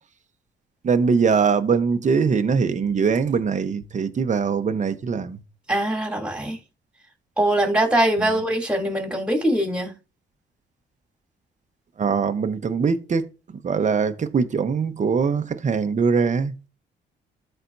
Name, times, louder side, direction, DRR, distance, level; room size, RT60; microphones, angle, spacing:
voice 1, 0.8-5.4 8.2-8.4 12.0-13.3 13.6-16.5, right 5 dB, 40° right, 1.0 m, -22 dB
voice 2, 5.7-6.6 7.4-9.9, right 1 dB, 5° right, 3.0 m, -22 dB
13.0 x 4.4 x 2.7 m
cardioid pair, 90°, 20 cm